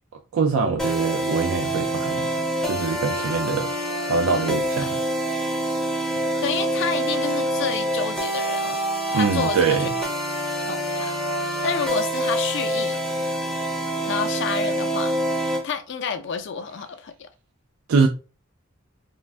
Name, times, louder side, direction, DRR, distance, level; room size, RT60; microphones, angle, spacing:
voice 1, 0.3-2.3 2.6-3.7 4.1-5.0 9.1-9.9 17.9-18.1, right 5 dB, 85° right, 0.4 m, -23 dB
sound 1, 0.8-15.6, right 1 dB, ahead, 0.5 m, -26 dB
voice 2, 6.4-8.8 9.1-9.9 10.6-11.2 11.6-13.0 14.1-15.1 15.6-17.3, left 5 dB, 60° left, 0.4 m, -29 dB
2.4 x 2.2 x 3.2 m
head